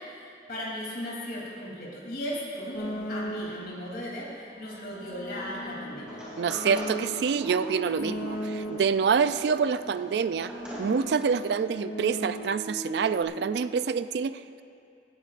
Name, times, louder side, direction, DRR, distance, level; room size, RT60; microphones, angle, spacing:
voice 1, 0.0-6.2 8.0-8.1, equal, 55° left, -6 dB, 3.0 m, -37 dB
sound 1, 2.7-3.8 4.6-9.1 9.8-13.2, equal, 75° left, 1.9 m, -38 dB
Sliding door, 6.1-11.5, equal, 5° right, 2.8 m, -42 dB
voice 2, 6.4-10.5 10.8-14.6, right 6 dB, 65° right, 13 dB, 0.3 m, -26 dB
17.5 x 13.5 x 2.5 m, 2.5 s
head